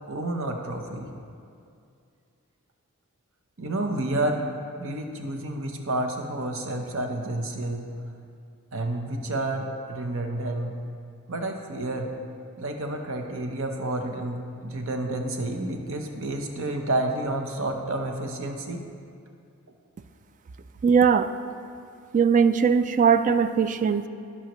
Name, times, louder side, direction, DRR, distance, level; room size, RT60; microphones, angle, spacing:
voice 1, 0.1-1.1 3.6-4.4 4.8-7.9 8.7-10.8 11.3-12.1 12.6-18.8, right 2 dB, 65° right, 3 dB, 0.9 m, -30 dB
voice 2, 20.8-21.3 22.1-24.1, right 6 dB, 35° right, 11 dB, 0.3 m, -20 dB
16.5 x 5.7 x 3.1 m, 2.4 s
head